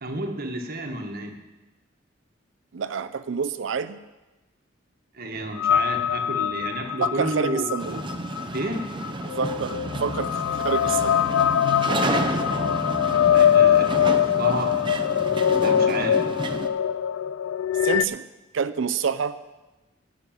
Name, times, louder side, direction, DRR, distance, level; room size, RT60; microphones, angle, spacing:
voice 1, 0.0-1.4 5.1-8.0 8.5-8.8 12.5-14.8 15.6-16.4, right 1 dB, 50° right, 3 dB, 1.4 m, -31 dB
voice 2, 2.7-4.0 7.0-8.0 9.4-11.3 17.8-18.2 18.5-19.4, right 6 dB, 70° right, 12 dB, 0.5 m, -28 dB
sound 1, 5.6-18.0, left 9 dB, 85° left, 0.3 m, -23 dB
sound 2, 7.8-16.7, right 2 dB, 25° right, 0.7 m, -31 dB
10.5 x 6.5 x 9.0 m, 1.1 s
head